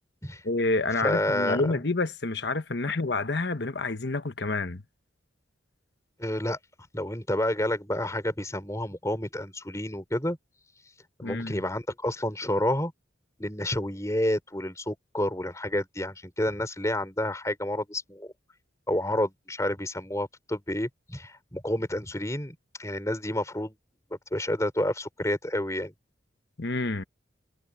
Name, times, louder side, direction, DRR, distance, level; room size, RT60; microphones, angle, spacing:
voice 1, 0.4-4.8 11.2-11.6 26.6-27.0, left 3 dB, 60° left, 1.1 m, -28 dB
voice 2, 1.0-1.8 6.2-6.6 6.9-10.4 11.2-12.9 13.4-18.3 18.9-23.7 24.1-25.9, left 1 dB, 15° left, 4.3 m, -29 dB
head